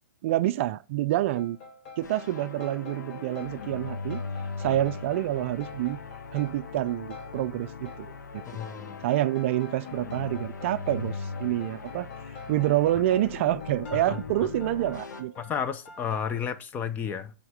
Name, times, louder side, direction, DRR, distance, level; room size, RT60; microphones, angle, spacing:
voice 1, 0.2-1.6 2.0-4.2 4.6-6.0 6.3-8.4 9.0-12.1 12.5-15.3, right 14 dB, 45° right, 0.4 m, -27 dB
sound 1, 1.3-16.5, left 4 dB, 45° left, 2.1 m, -47 dB
sound 2, 2.0-15.2, left 4 dB, 90° left, 1.0 m, -39 dB
voice 2, 8.5-9.0 14.1-14.2 15.4-17.3, left 7 dB, 20° left, 0.5 m, -32 dB
8.9 x 3.6 x 5.1 m
hypercardioid pair, 145°, 9 cm